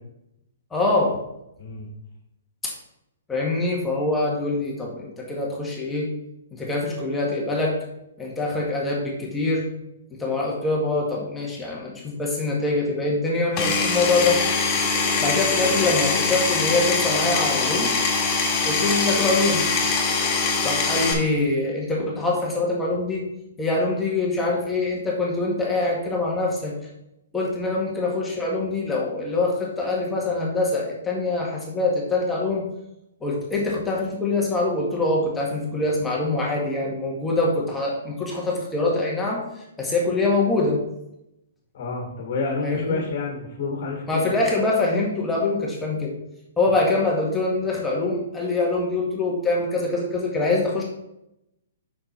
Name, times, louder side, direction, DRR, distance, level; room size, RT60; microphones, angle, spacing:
voice 1, 0.7-1.2 2.6-2.7 3.3-6.1 6.5-7.7 8.2-9.7 10.2-14.4 15.2-17.9 18.6-19.6 20.6-23.2 23.6-26.7 27.3-32.6 33.2-39.4 39.8-40.8 42.6-43.0 44.1-46.1 46.6-50.8, left 2 dB, 10° left, -4 dB, 1.8 m, -24 dB
voice 2, 1.6-1.9 41.7-44.2, left 3 dB, 50° left, 0 dB, 1.7 m, -29 dB
Power tool, 13.6-21.1, left 4 dB, 25° left, 2.0 m, -23 dB
6.5 x 6.1 x 4.4 m, 0.85 s
hypercardioid pair, 135°, 0 cm